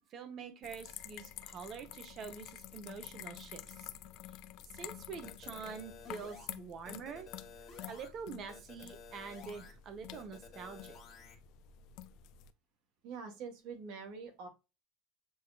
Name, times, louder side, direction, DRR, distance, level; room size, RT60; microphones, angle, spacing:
voice 1, 0.1-3.9 4.7-7.3 7.9-11.0, right 6 dB, 35° right, 8 dB, 1.0 m, -46 dB
sound 1, 0.6-12.5, left 12 dB, 55° left, 0.4 m, -50 dB
sound 2, 5.2-6.5 6.8-8.1 8.5-9.7 10.1-11.4, left 6 dB, 35° left, 1.6 m, -53 dB
voice 2, 13.0-14.5, right 5 dB, 60° right, 5 dB, 1.6 m, -45 dB
7.8 x 2.8 x 2.4 m, 0.28 s
cardioid pair, 160°, 0 cm